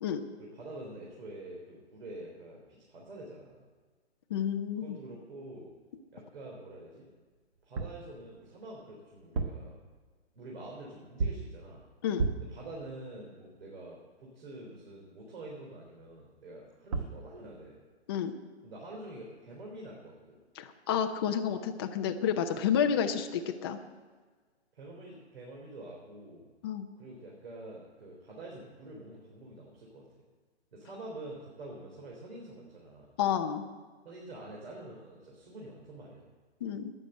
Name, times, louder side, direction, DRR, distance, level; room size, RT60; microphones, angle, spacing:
voice 1, 0.4-2.6 2.9-3.6 4.8-5.7 6.1-7.1 7.6-9.7 10.3-11.8 12.5-17.8 18.6-20.4 22.5-22.7 24.7-26.5 27.0-30.0 30.7-33.1 34.0-36.2, right 1 dB, 60° right, -2 dB, 3.5 m, -46 dB
voice 2, 4.3-5.0 12.0-12.3 18.1-18.3 20.6-23.8 26.6-26.9 33.2-33.6 36.6-36.9, left 8 dB, 20° left, 5 dB, 0.6 m, -30 dB
sound 1, 7.6-8.1 9.2-9.7 11.2-11.6 12.2-12.6 16.6-16.7 16.9-17.2, right 4 dB, 30° right, 1.0 m, -32 dB
12.0 x 9.8 x 7.8 m, 1.4 s
hypercardioid pair, 155°, 34 cm